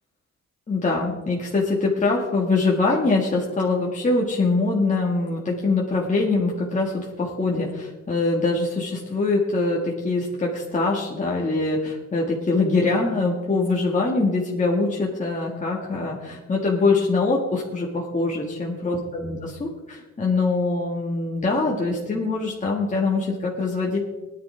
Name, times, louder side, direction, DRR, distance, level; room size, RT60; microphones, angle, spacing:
voice 1, 0.7-24.0, left 3 dB, 25° left, -3 dB, 1.9 m, -23 dB
19.5 x 10.5 x 3.5 m, 1.2 s
cardioid pair, 110°, 30 cm